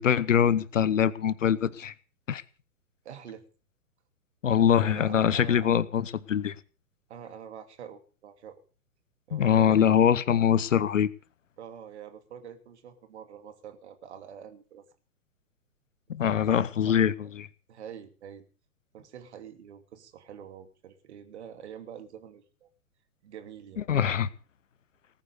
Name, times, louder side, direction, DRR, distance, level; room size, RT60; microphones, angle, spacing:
voice 1, 0.0-1.9 2.3-2.4 4.4-6.5 9.3-11.1 16.1-17.1 23.9-24.3, left 9 dB, 55° left, 1.1 m, -23 dB
voice 2, 3.0-3.4 4.5-5.8 7.1-8.6 9.3-9.8 10.3-10.5 11.6-14.8 16.1-17.3 17.7-18.4 18.9-22.7 23.2-23.8, right 8 dB, 50° right, 2.9 m, -46 dB
19.0 x 9.4 x 6.6 m
figure-of-eight pair, 115°, 44 cm